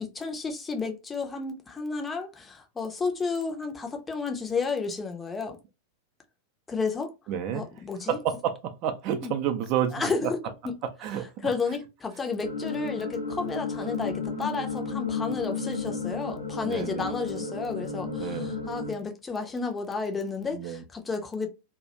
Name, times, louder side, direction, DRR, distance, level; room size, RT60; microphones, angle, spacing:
voice 1, 0.0-5.6 6.7-7.1 7.5-8.2 9.2-9.3 9.9-10.4 10.6-10.7 11.4-21.5, left 4 dB, 15° left, 0.5 m, -32 dB
voice 2, 7.3-7.7 8.1-10.1 11.0-11.5 16.6-17.1 18.2-18.6 20.5-20.8, right 9 dB, 40° right, 0.4 m, -30 dB
sound 1, 12.4-18.9, left 4 dB, 80° left, 0.6 m, -33 dB
2.3 x 2.0 x 2.7 m
figure-of-eight pair, 90°, 0 cm